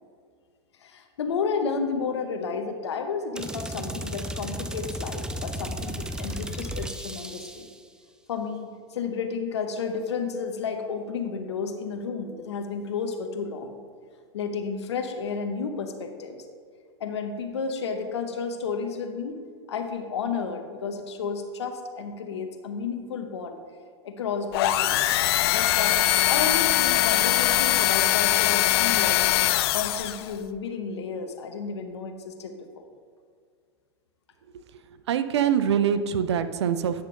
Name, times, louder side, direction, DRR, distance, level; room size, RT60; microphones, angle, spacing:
voice 1, 0.8-7.7 8.3-13.8 14.3-16.4 17.0-19.4 19.7-23.6 24.0-25.2 25.5-29.3 29.7-32.9, left 5 dB, 80° left, 6 dB, 0.9 m, -32 dB
sound 1, 3.3-7.8, equal, 5° right, 0.5 m, -34 dB
sound 2, 24.5-30.3, left 15 dB, 65° left, 0.4 m, -22 dB
voice 2, 35.1-37.0, right 8 dB, 80° right, 12 dB, 0.6 m, -24 dB
9.6 x 6.5 x 3.8 m, 2.1 s
hypercardioid pair, 100°, 14 cm